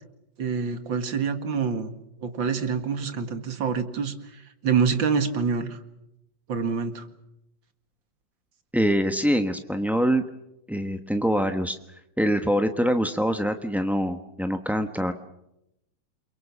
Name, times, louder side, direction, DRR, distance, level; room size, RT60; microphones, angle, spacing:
voice 1, 0.4-1.9 2.2-5.8 6.5-7.1, right 6 dB, 70° right, 9 dB, 2.6 m, -26 dB
voice 2, 8.7-10.2 10.7-11.8 12.2-15.1, equal, ahead, 6 dB, 0.5 m, -24 dB
29.0 x 23.0 x 7.3 m, 0.85 s
omnidirectional pair, 2.2 m